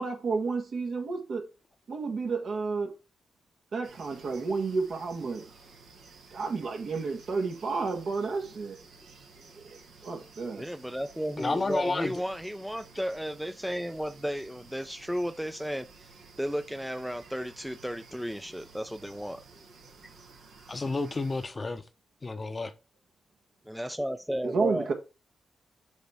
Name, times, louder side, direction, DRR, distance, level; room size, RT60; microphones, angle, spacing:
voice 1, 0.0-1.5 1.9-2.9 3.7-5.4 6.3-8.8 9.6-10.6 24.4-24.9, right 4 dB, 65° right, 1.6 m, -31 dB
sound 1, 3.8-21.5, right 4 dB, 85° right, 2.0 m, -54 dB
voice 2, 10.4-16.1 16.4-19.6 23.7-24.9, equal, 5° right, 0.5 m, -34 dB
voice 3, 11.4-12.1 20.7-21.8 22.2-22.7, left 3 dB, 35° left, 0.8 m, -30 dB
7.2 x 3.6 x 5.6 m
supercardioid pair, 55°, 0 cm